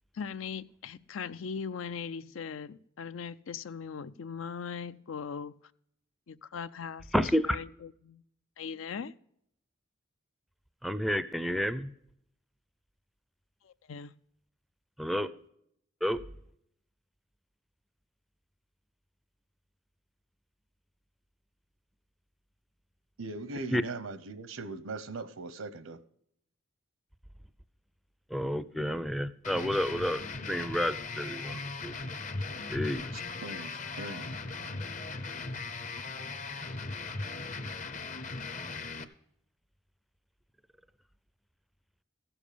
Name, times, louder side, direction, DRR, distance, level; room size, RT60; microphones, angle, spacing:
voice 1, 0.2-5.5 6.3-7.1 7.5-7.6 8.0-8.2 8.6-9.1 13.9-14.1, left 6 dB, 70° left, 0.5 m, -39 dB
voice 2, 7.1-7.6 10.8-11.9 15.0-15.3 16.0-16.2 23.7-23.8 28.3-30.2 30.5-31.9 32.7-33.0, equal, ahead, 0.5 m, -30 dB
voice 3, 23.2-26.0 33.1-34.3, right 3 dB, 80° right, 0.8 m, -40 dB
sound 1, 29.4-39.0, left 3 dB, 40° left, 0.8 m, -38 dB
15.5 x 7.2 x 5.0 m
head